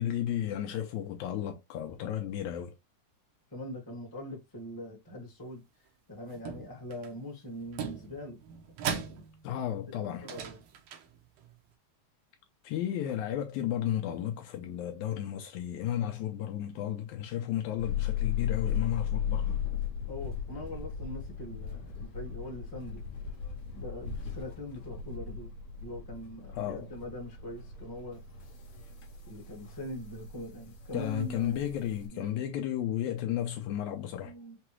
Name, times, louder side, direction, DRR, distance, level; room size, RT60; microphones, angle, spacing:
voice 1, 0.0-2.7 9.4-10.3 12.6-19.6 26.5-26.9 30.9-34.3, left 11 dB, 85° left, 2.0 m, -33 dB
voice 2, 3.5-5.6 6.1-8.4 8.8-9.2 9.9-10.6 20.1-23.0 23.7-25.5 25.8-28.2 29.3-31.7 32.1-32.3 34.2-34.6, left 1 dB, 15° left, 0.9 m, -42 dB
sound 1, 6.3-7.1 7.6-9.7 10.1-11.5, right 7 dB, 70° right, 1.9 m, -39 dB
sound 2, 17.8-32.1, left 8 dB, 60° left, 1.8 m, -37 dB
5.8 x 2.3 x 3.0 m
omnidirectional pair, 3.3 m